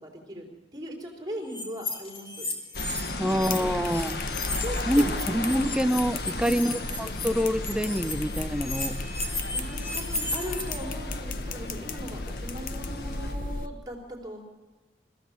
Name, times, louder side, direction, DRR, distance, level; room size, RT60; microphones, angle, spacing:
voice 1, 0.0-0.5 0.7-2.5 3.1-3.7 4.6-5.2 6.4-6.8 9.2-14.4, equal, 25° right, 0 dB, 4.0 m, -39 dB
sound 1, 1.5-3.6 3.8-10.8, left 2 dB, 30° left, 4.1 m, -35 dB
sound 2, 2.7-13.3, left 2 dB, 65° left, 1.6 m, -36 dB
voice 2, 3.2-4.2 4.9-9.0, equal, 5° right, 9 dB, 0.8 m, -26 dB
sound 3, 3.3-13.7, left 3 dB, 50° left, 1.0 m, -36 dB
25.0 x 15.5 x 7.4 m, 1.3 s
head